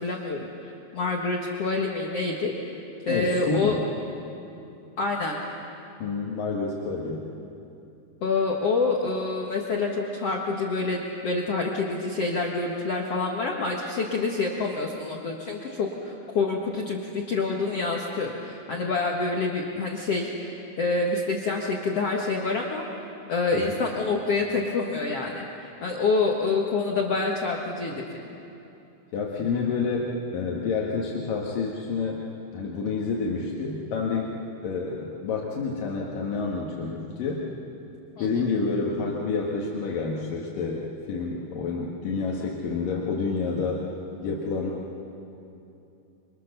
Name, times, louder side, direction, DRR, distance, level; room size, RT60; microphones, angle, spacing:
voice 1, 0.0-3.8 5.0-5.4 8.2-22.8 23.3-28.3 38.2-38.3, left 3 dB, 80° left, -1 dB, 1.3 m, -27 dB
voice 2, 3.1-3.8 6.0-7.3 23.5-23.8 29.1-32.2 32.5-34.3 34.6-37.5 38.2-43.8 44.2-44.8, left 4 dB, 55° left, -3 dB, 3.0 m, -29 dB
29.0 x 24.5 x 6.8 m, 2.8 s
omnidirectional pair, 5.4 m